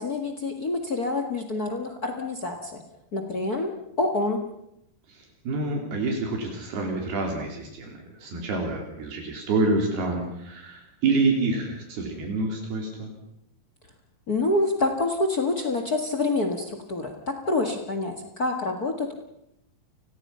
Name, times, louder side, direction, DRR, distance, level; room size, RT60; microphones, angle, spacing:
voice 1, 0.0-2.8 3.1-3.7 4.0-4.4 14.3-19.2, left 2 dB, 55° left, 6 dB, 1.0 m, -27 dB
voice 2, 5.1-13.1, right 3 dB, 70° right, 2 dB, 5.0 m, -27 dB
29.5 x 21.0 x 5.6 m, 0.80 s
omnidirectional pair, 4.7 m